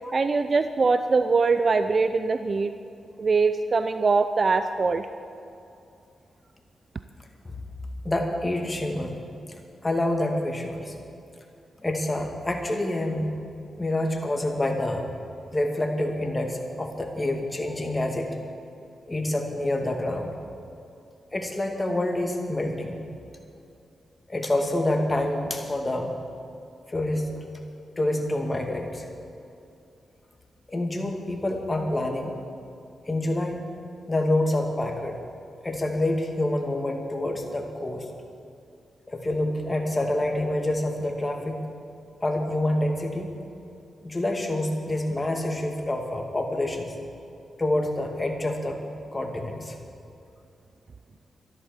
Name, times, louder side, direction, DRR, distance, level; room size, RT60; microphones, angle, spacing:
voice 1, 0.1-2.7 3.2-5.1, right 4 dB, 50° right, 10 dB, 0.6 m, -22 dB
voice 2, 8.0-9.2 9.8-10.9 11.8-13.3 13.8-15.1 15.5-18.4 19.1-20.3 21.3-23.0 24.3-26.2 26.9-27.5 28.0-29.1 30.7-32.3 33.0-33.6 34.1-35.2 35.6-38.1 39.1-41.6 42.2-43.3 44.0-46.9 47.6-48.8 49.1-49.8, left 1 dB, 25° left, 2 dB, 2.4 m, -27 dB
12.5 x 11.5 x 7.3 m, 2.7 s
cardioid pair, 55°, 0 cm